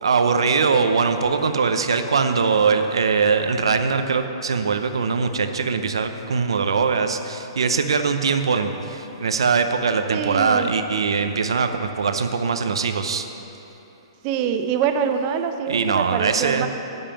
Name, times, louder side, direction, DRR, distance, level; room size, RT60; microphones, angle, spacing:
voice 1, 0.0-13.3 15.7-16.7, right 5 dB, 85° right, 8 dB, 0.7 m, -21 dB
voice 2, 10.1-10.7 14.2-16.7, right 7 dB, 35° right, 7 dB, 0.7 m, -24 dB
10.5 x 5.6 x 7.0 m, 3.0 s
hypercardioid pair, 135°, 3 cm